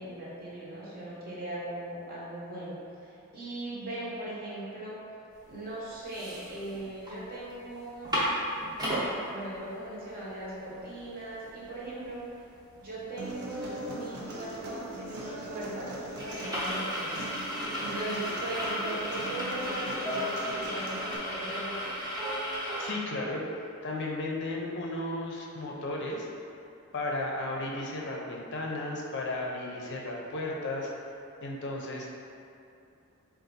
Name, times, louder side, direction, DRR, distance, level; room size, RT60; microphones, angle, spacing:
voice 1, 0.0-5.0 5.5-8.2 9.3-12.3 12.8-17.2 17.8-21.9, right 1 dB, 45° right, -7 dB, 1.0 m, -39 dB
sound 1, 5.5-5.6 5.9-7.1 7.5-7.6 7.9-9.1 9.7-9.8 10.1-22.9, equal, 20° right, 0.8 m, -35 dB
Human voice, 13.2-21.2, right 1 dB, 85° right, 0.6 m, -41 dB
voice 2, 22.8-23.4 23.8-26.3 26.9-30.9 31.4-32.1, left 2 dB, 55° left, -1 dB, 0.5 m, -34 dB
3.8 x 2.4 x 3.9 m, 2.7 s
head